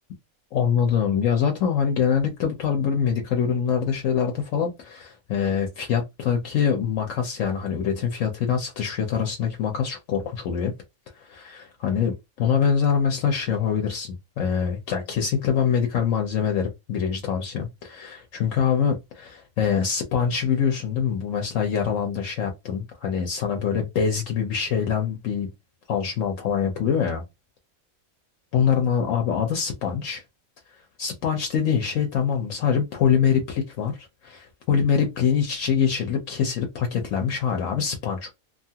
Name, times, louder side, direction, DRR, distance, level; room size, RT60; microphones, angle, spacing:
voice 1, 0.5-10.7 11.2-25.5 25.9-27.2 28.5-30.2 31.0-38.3, left 7 dB, 70° left, 1.0 m, -24 dB
2.7 x 2.4 x 2.8 m
omnidirectional pair, 1.5 m